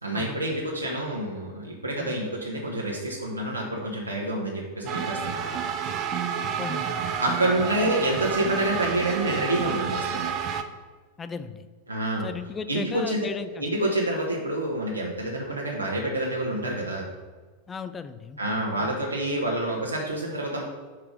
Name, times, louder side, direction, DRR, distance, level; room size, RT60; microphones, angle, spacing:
voice 1, 0.0-5.5 7.2-10.3 11.9-12.3 12.7-13.3 13.5-17.1 18.4-20.6, right 1 dB, 85° right, -3 dB, 1.0 m, -28 dB
sound 1, 4.9-10.6, right 7 dB, 35° right, 0.6 m, -30 dB
voice 2, 6.6-7.2 11.2-11.6 12.2-13.7 17.7-18.5, left 5 dB, 20° left, 11 dB, 0.5 m, -36 dB
5.8 x 4.7 x 5.1 m, 1.4 s
figure-of-eight pair, 90°, 0 cm